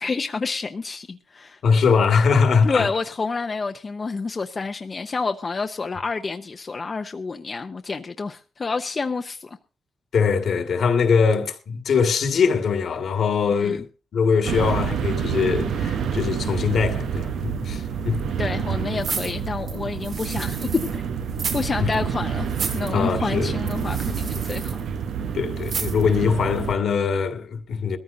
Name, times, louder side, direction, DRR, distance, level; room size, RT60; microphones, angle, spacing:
voice 1, 0.0-1.6 2.6-9.6 13.6-13.8 18.4-21.0 21.3-22.5 22.7-24.8, left 4 dB, 40° left, 0.7 m, -29 dB
voice 2, 1.6-2.9 10.1-13.9 14.1-18.2 21.8-21.9 22.9-23.6 25.3-28.0, left 5 dB, 75° left, 1.9 m, -22 dB
sound 1, 14.4-26.7, right 7 dB, 90° right, 0.9 m, -28 dB
sound 2, 19.0-21.0 21.3-21.7 21.9-22.0 22.5-22.9 23.7-24.8 25.6-26.1 26.6-26.7, right 5 dB, 70° right, 3.0 m, -32 dB
21.5 x 14.5 x 2.7 m
cardioid pair, 85°, 0 cm